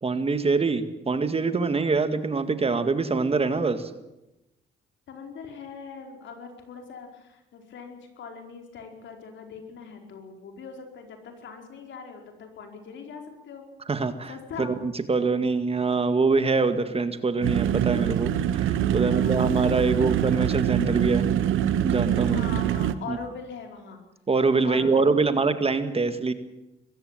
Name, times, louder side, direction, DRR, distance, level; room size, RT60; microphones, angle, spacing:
voice 1, 0.0-3.9 13.9-14.3 14.6-21.3 21.8-22.4 23.1-23.2 24.3-26.3, right 4 dB, 30° right, 10 dB, 1.9 m, -24 dB
voice 2, 5.1-13.7 14.3-14.7 18.9-19.5 19.8-20.1 22.2-24.0 24.6-25.5, left 5 dB, 70° left, 4 dB, 4.8 m, -41 dB
sound 1, 17.4-22.9, right 10 dB, 85° right, 1.2 m, -24 dB
21.0 x 15.5 x 9.1 m, 0.94 s
cardioid pair, 90°, 20 cm